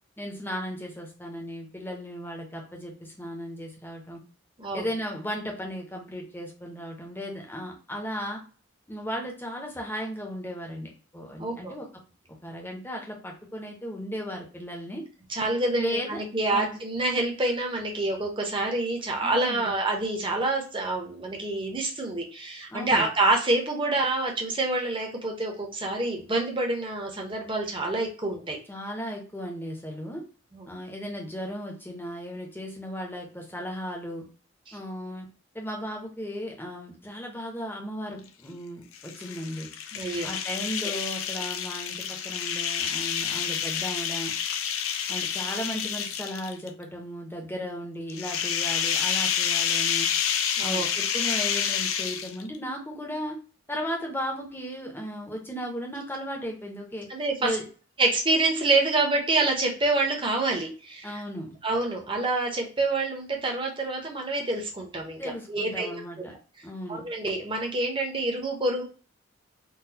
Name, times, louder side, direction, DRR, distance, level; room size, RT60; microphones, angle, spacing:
voice 1, 0.2-4.2 4.7-8.4 8.9-11.9 12.4-15.0 15.7-16.2 16.5-16.8 19.2-19.7 22.7-23.1 28.7-30.3 30.7-34.2 34.7-35.3 35.5-39.7 40.2-44.3 45.1-50.1 50.6-53.4 53.7-57.1 57.4-57.6 61.0-61.6 65.2-66.3 66.6-67.0, equal, 10° left, 0 dB, 0.7 m, -35 dB
voice 2, 11.4-11.7 15.3-28.6 30.5-30.7 34.7-34.8 39.9-40.3 50.6-50.9 57.1-57.6 58.0-61.2 61.6-65.2 65.5-66.3 66.9-68.8, right 2 dB, 25° right, 1 dB, 0.7 m, -27 dB
sound 1, 38.9-46.7 48.1-52.6, left 8 dB, 80° left, 0.4 m, -29 dB
3.8 x 2.3 x 2.8 m, 0.38 s
head